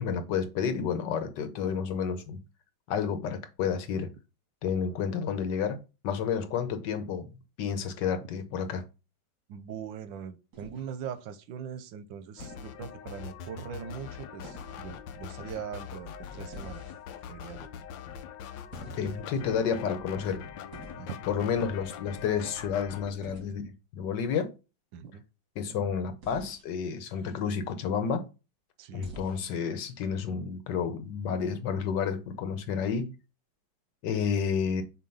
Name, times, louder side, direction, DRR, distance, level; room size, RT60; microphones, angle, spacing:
voice 1, 0.0-2.4 2.9-4.1 4.6-5.8 6.0-7.3 7.6-8.8 19.0-20.5 21.3-24.5 25.6-28.2 28.9-33.1 34.0-34.8, left 6 dB, 70° left, 1.5 m, -30 dB
voice 2, 9.5-16.8 17.3-17.7 21.0-21.3 24.9-25.2 28.8-29.1, right 8 dB, 85° right, 1.5 m, -41 dB
sound 1, 10.5-11.2 12.4-12.8 14.4-14.9 16.5-17.2 18.7-19.4 20.7-21.1 23.2-23.5 26.2-26.7 29.0-29.6, right 2 dB, 60° right, 2.8 m, -48 dB
sound 2, 12.4-23.1, left 8 dB, 90° left, 1.4 m, -43 dB
6.9 x 2.9 x 5.4 m
omnidirectional pair, 2.0 m